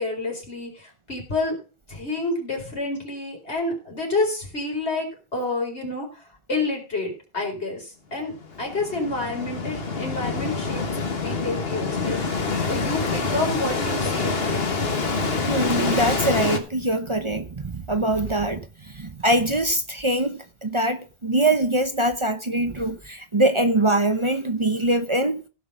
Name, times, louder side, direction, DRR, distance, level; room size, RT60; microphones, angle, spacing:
voice 1, 0.0-1.6 1.9-6.2 6.5-10.8 11.2-14.6, left 2 dB, 80° left, 4.8 m, -29 dB
sound 1, 8.3-16.6, left 4 dB, 65° left, 1.7 m, -26 dB
voice 2, 15.3-25.4, right 1 dB, 30° right, 0.9 m, -23 dB
16.5 x 5.9 x 5.5 m
omnidirectional pair, 1.1 m